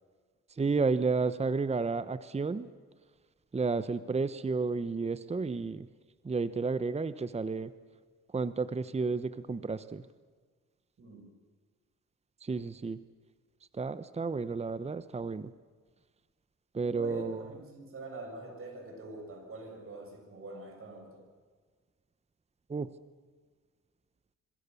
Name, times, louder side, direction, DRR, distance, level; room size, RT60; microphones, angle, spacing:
voice 1, 0.6-2.7 3.5-5.9 6.2-7.7 8.3-10.0 12.4-13.0 13.7-15.5 16.7-17.5 22.7-22.9, right 4 dB, 20° right, 14 dB, 1.0 m, -31 dB
voice 2, 11.0-11.3 16.8-21.2, right 2 dB, 45° right, 3 dB, 7.1 m, -44 dB
26.5 x 23.5 x 7.0 m, 1.5 s
cardioid pair, 90°, 30 cm